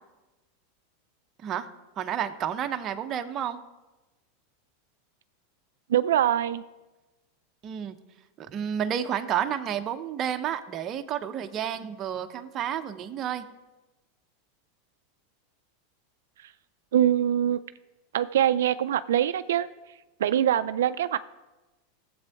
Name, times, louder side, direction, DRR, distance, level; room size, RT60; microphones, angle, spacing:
voice 1, 2.0-3.6 7.6-8.0 8.4-13.4, right 9 dB, 35° right, 7 dB, 0.7 m, -30 dB
voice 2, 5.9-6.6 16.9-17.6 18.1-19.7 20.2-21.2, right 11 dB, 85° right, 12 dB, 0.3 m, -23 dB
15.5 x 7.7 x 3.5 m, 1.1 s
supercardioid pair, 125°, 0 cm